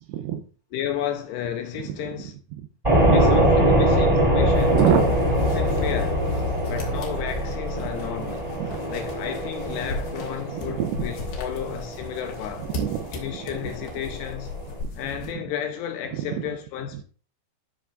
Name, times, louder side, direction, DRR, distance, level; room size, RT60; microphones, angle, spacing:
voice 1, 0.1-0.4 2.0-2.7 4.7-5.1 7.8-7.9 8.6-8.9 10.5-11.1 12.6-13.7 14.8-15.4 16.1-16.4 16.9-17.0, right 10 dB, 80° right, 2.7 m, -28 dB
voice 2, 0.7-2.3 3.1-4.8 5.6-6.2 6.7-8.5 8.9-12.7 13.1-14.5 15.0-17.0, left 9 dB, 85° left, 2.5 m, -32 dB
sound 1, 2.8-14.8, equal, 10° right, 2.2 m, -23 dB
sound 2, 4.5-15.3, left 3 dB, 65° left, 3.3 m, -39 dB
Mechanical fan, 5.6-12.5 12.7-13.5, left 1 dB, 45° left, 2.2 m, -37 dB
13.0 x 6.0 x 2.4 m
omnidirectional pair, 5.2 m